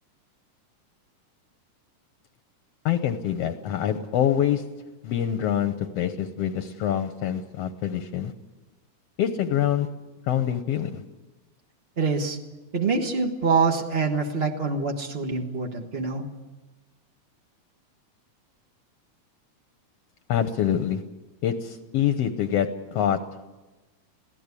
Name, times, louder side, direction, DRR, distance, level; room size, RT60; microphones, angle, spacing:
voice 1, 2.8-4.6 5.0-8.3 9.2-9.9 10.3-11.0 20.3-21.0 21.4-23.2, left 10 dB, 65° left, 9 dB, 1.6 m, -25 dB
voice 2, 12.0-12.4 12.7-16.2, right 4 dB, 65° right, 3 dB, 0.5 m, -25 dB
23.0 x 16.5 x 8.4 m, 1.2 s
omnidirectional pair, 3.7 m